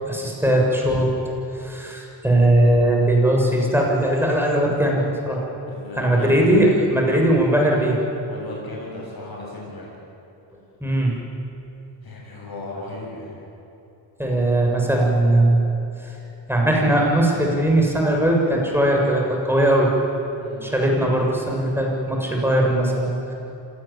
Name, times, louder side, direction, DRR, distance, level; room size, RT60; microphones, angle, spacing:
voice 1, 0.1-1.1 1.6-5.4 6.0-8.0 10.8-11.1 14.2-15.6 16.0-16.1 16.5-19.9 20.6-23.3, right 1 dB, 5° right, -1 dB, 7.0 m, -19 dB
voice 2, 5.7-6.3 6.8-7.6 8.3-9.9 12.0-13.3 20.4-20.7, left 2 dB, 50° left, -3 dB, 7.6 m, -36 dB
26.5 x 17.5 x 8.8 m, 3.0 s
cardioid pair, 65°, 47 cm